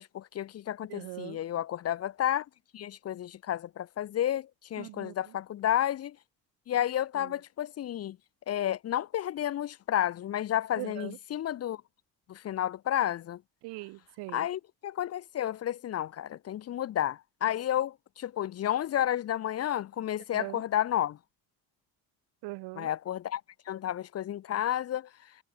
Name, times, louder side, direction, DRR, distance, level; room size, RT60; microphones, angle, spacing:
voice 1, 0.0-2.5 2.7-6.2 6.7-8.2 8.5-11.8 12.3-13.4 14.3-21.2 22.8-23.4 23.7-25.1, left 11 dB, 40° left, 0.6 m, -31 dB
voice 2, 0.9-1.4 4.8-5.4 7.1-7.4 10.8-11.2 13.6-14.5 20.3-20.6 22.4-22.9, right 23 dB, 75° right, 1.8 m, -41 dB
supercardioid pair, 90°, 39 cm